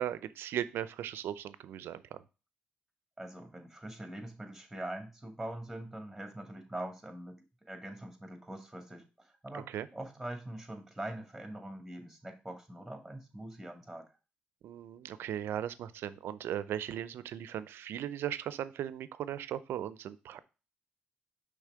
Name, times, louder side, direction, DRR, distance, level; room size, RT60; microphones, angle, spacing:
voice 1, 0.0-2.2 9.5-9.9 14.6-20.4, right 10 dB, 80° right, 16 dB, 0.5 m, -37 dB
voice 2, 3.2-14.1, right 1 dB, 5° right, 5 dB, 2.1 m, -43 dB
5.6 x 3.4 x 4.9 m, 0.31 s
supercardioid pair, 65°, 4 cm